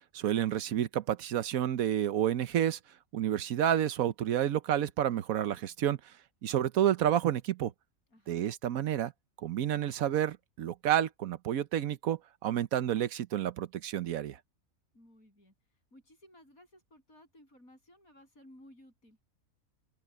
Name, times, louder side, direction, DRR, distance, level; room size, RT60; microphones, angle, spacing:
voice 1, 0.1-2.8 3.1-6.1 6.4-7.7 8.3-9.1 9.4-14.4, right 10 dB, 85° right, 1.2 m, -30 dB
voice 2, 14.9-19.2, left 1 dB, 85° left, 8.7 m, -58 dB
open air
omnidirectional pair, 1.4 m